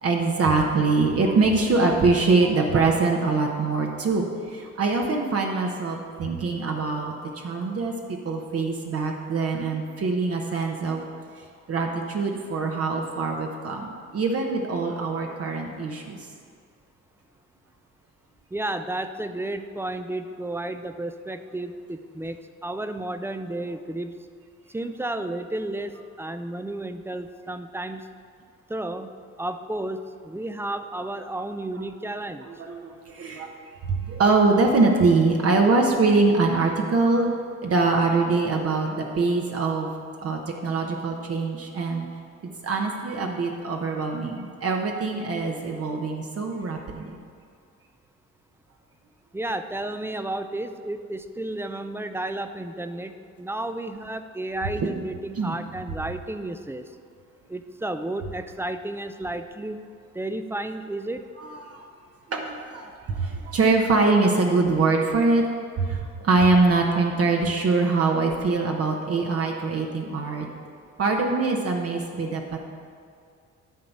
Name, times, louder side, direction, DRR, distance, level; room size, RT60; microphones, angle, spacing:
voice 1, 0.0-11.0 11.7-16.2 32.4-33.5 33.9-37.4 37.6-39.9 40.2-42.1 42.6-47.2 54.8-54.9 55.3-55.6 61.4-61.8 62.3-65.4 65.8-70.5 71.0-72.6, right 3 dB, 50° right, 1 dB, 1.0 m, -23 dB
voice 2, 18.5-24.1 24.7-28.1 28.7-29.1 29.4-32.5 49.3-56.9 57.5-59.8 60.1-61.3, right 1 dB, 10° right, 9 dB, 0.4 m, -32 dB
10.5 x 4.0 x 7.1 m, 2.3 s
cardioid pair, 90°, 30 cm